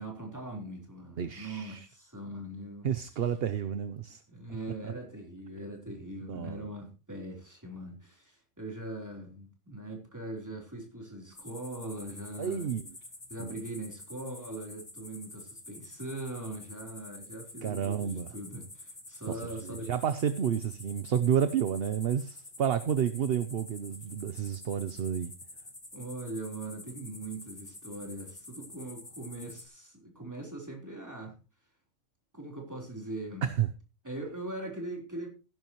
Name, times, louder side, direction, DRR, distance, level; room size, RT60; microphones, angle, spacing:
voice 1, 0.0-2.9 4.3-12.7 13.3-19.9 24.8-24.9 25.9-31.4 32.3-33.5 34.0-35.3, right 1 dB, 15° right, 3.8 m, -41 dB
voice 2, 1.2-1.9 2.8-4.2 4.8-4.9 6.3-6.6 12.4-12.8 13.4-13.6 17.6-18.3 19.3-25.3 33.4-33.7, right 8 dB, 55° right, 0.9 m, -30 dB
sound 1, 11.3-29.6, left 2 dB, 25° left, 1.9 m, -48 dB
16.0 x 11.0 x 3.1 m
omnidirectional pair, 1.4 m